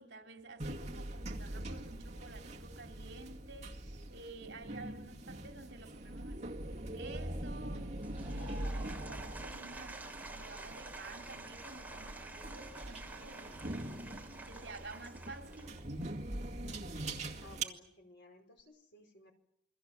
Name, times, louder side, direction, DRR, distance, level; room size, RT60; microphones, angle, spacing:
voice 1, 0.0-7.9 8.3-14.1 14.5-15.8, right 2 dB, 65° right, 3.2 m, -51 dB
sound 1, 0.6-17.6, right 1 dB, 40° right, 2.1 m, -43 dB
Applause / Crowd, 8.0-16.2, right 2 dB, 10° right, 3.3 m, -49 dB
voice 2, 16.3-17.0 17.4-19.3, left 1 dB, 65° left, 5.2 m, -58 dB
28.0 x 23.0 x 7.5 m
head